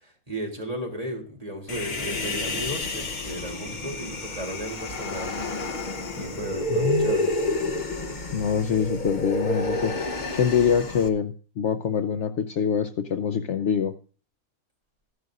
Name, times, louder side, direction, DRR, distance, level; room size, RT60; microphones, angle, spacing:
voice 1, 0.0-5.4 6.1-7.3, equal, 25° right, 2 dB, 3.5 m, -34 dB
Human voice, 1.7-11.1, left 1 dB, 35° left, 1.0 m, -29 dB
voice 2, 6.7-7.1 8.3-13.9, left 7 dB, 60° left, 10 dB, 0.9 m, -25 dB
14.5 x 11.0 x 2.5 m, 0.39 s
omnidirectional pair, 1.5 m